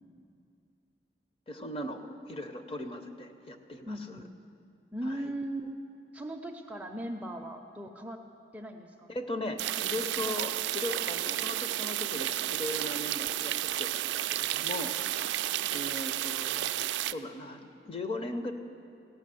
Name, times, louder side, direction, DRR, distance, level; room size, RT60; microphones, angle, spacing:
voice 1, 1.5-4.2 5.1-5.2 9.1-14.9 15.7-18.5, left 1 dB, 30° left, 6 dB, 0.6 m, -38 dB
voice 2, 3.9-4.3 4.9-5.8 6.1-8.2 8.5-9.1 15.3-15.9, right 1 dB, 10° right, 4 dB, 0.4 m, -39 dB
sound 1, 9.6-17.1, right 13 dB, 85° right, 0.3 m, -32 dB
16.5 x 6.0 x 7.6 m, 2.5 s
head